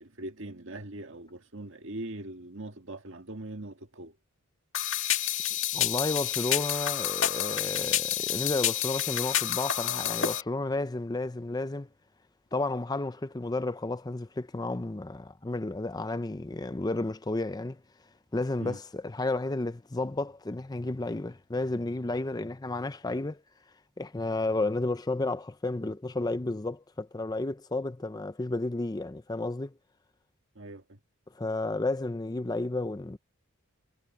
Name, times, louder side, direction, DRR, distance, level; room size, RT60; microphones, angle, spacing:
voice 1, 0.0-4.2 18.6-18.8 30.6-31.0, right 1 dB, 60° right, 1.9 m, -41 dB
sound 1, 4.7-10.4, left 11 dB, 60° left, 2.2 m, -29 dB
voice 2, 5.7-11.9 12.5-17.8 18.3-23.4 24.0-29.7 31.4-33.2, left 2 dB, 20° left, 0.5 m, -32 dB
head